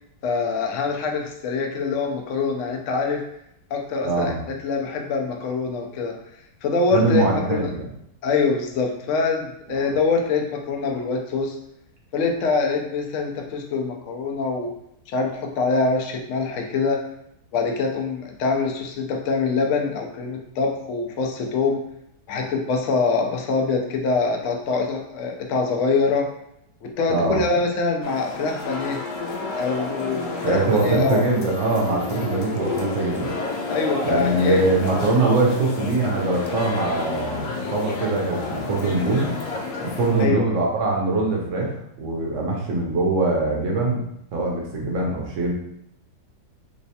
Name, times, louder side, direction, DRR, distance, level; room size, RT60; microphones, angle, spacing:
voice 1, 0.2-3.3 3.7-4.3 4.6-6.2 6.6-7.7 8.2-11.6 12.1-14.7 15.1-17.0 17.5-21.8 22.3-26.3 26.8-29.0 29.6-31.2 33.7-34.6 40.2-40.5, left 4 dB, 65° left, 2 dB, 0.7 m, -24 dB
voice 2, 4.0-4.4 6.9-7.9 9.7-9.9 27.1-27.4 30.4-33.3 34.0-39.3 39.8-44.0 44.3-45.5, right 3 dB, 60° right, -1 dB, 0.8 m, -23 dB
sound 1, 28.0-40.3, left 3 dB, 85° left, 1.2 m, -30 dB
3.2 x 3.2 x 2.7 m, 0.76 s
omnidirectional pair, 1.8 m